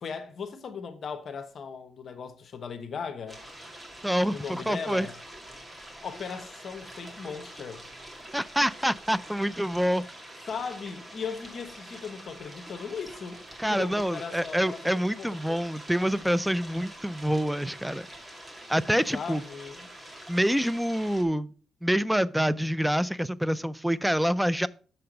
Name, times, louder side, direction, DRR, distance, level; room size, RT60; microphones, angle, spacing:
voice 1, 0.0-3.4 4.3-5.1 6.0-7.8 10.5-13.4 13.7-14.8 15.1-15.6 19.1-19.9, left 6 dB, 55° left, 1.0 m, -38 dB
sound 1, 3.3-21.2, right 1 dB, 20° right, 2.1 m, -46 dB
voice 2, 4.0-5.1 8.3-10.0 13.6-18.1 18.7-19.4 20.3-21.5 21.8-24.7, equal, 5° right, 0.4 m, -26 dB
6.7 x 5.7 x 5.0 m
cardioid pair, 75°, 0 cm